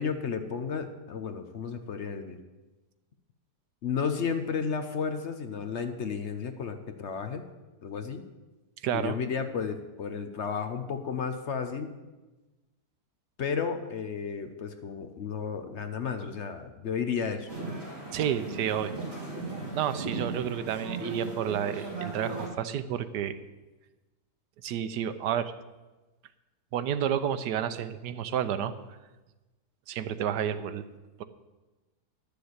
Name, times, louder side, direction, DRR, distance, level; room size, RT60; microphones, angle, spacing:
voice 1, 0.0-2.4 3.8-7.4 7.8-8.2 8.9-11.9 13.4-17.5, left 6 dB, 55° left, 8 dB, 0.9 m, -33 dB
voice 2, 8.8-9.2 18.1-18.9 19.7-23.3 24.6-25.5 26.7-28.7 29.9-30.8, right 9 dB, 80° right, 11 dB, 1.3 m, -30 dB
sound 1, 17.5-22.5, right 3 dB, 35° right, 4.0 m, -37 dB
11.5 x 6.8 x 8.0 m, 1.1 s
omnidirectional pair, 1.7 m